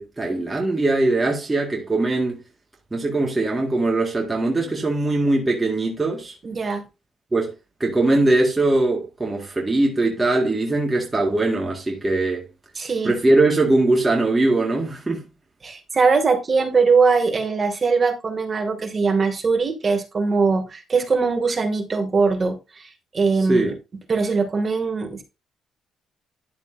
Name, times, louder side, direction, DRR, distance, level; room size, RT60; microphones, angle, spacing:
voice 1, 0.0-2.4 2.9-6.3 7.3-7.5 7.8-12.5 13.0-15.3 23.5-23.7, right 2 dB, 20° right, 1.9 m, -21 dB
voice 2, 6.4-6.8 12.8-13.1 15.6-23.7 24.1-25.2, right 4 dB, 35° right, 2.3 m, -21 dB
11.0 x 6.7 x 2.7 m
cardioid pair, 90°, 0 cm